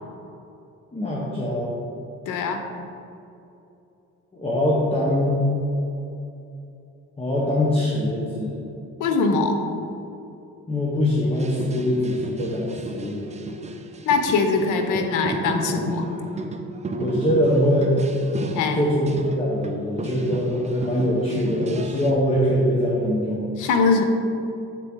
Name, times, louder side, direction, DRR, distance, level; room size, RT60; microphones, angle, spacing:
voice 1, 0.9-1.7 4.3-5.5 7.2-8.6 10.7-13.3 17.0-18.0 18.7-23.5, equal, 20° left, -5 dB, 1.0 m, -23 dB
voice 2, 2.3-2.6 9.0-9.6 14.1-16.1 18.5-18.8 23.6-24.0, left 4 dB, 90° left, 5 dB, 0.6 m, -22 dB
sound 1, 11.4-19.7 20.0-22.1, right 2 dB, 25° right, 0.5 m, -33 dB
7.5 x 4.0 x 3.7 m, 2.8 s
cardioid pair, 90°, 30 cm